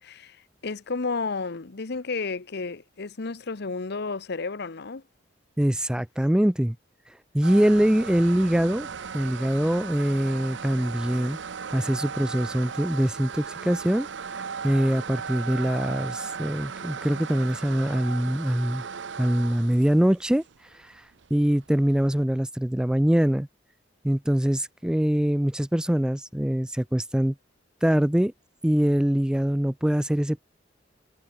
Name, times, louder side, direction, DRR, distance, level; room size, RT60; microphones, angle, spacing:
voice 1, 0.1-5.0, left 4 dB, 60° left, 0.9 m, -32 dB
voice 2, 5.6-6.8 7.3-8.9 9.1-11.4 11.7-14.1 14.6-18.8 19.2-20.4 20.8-20.9 21.3-23.5 24.0-27.3 27.8-28.3 28.6-30.4, equal, 5° right, 0.4 m, -23 dB
sound 1, 7.4-22.2, right 6 dB, 70° right, 0.7 m, -37 dB
head